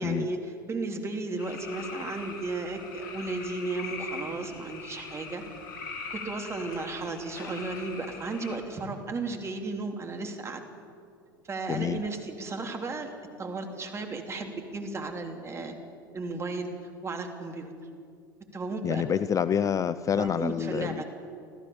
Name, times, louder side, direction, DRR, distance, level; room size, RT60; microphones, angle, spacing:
voice 1, 0.0-5.4 6.1-10.6 11.5-13.1 13.4-15.8 16.1-16.7 17.0-17.7 18.5-19.0 20.1-21.0, right 3 dB, 25° right, 3 dB, 3.1 m, -34 dB
sound 1, 1.4-8.6, left 4 dB, 65° left, 3.3 m, -41 dB
voice 2, 11.7-12.0 18.8-21.0, left 8 dB, 30° left, 15 dB, 0.5 m, -27 dB
25.0 x 15.0 x 7.2 m, 2.4 s
hypercardioid pair, 80°, 12 cm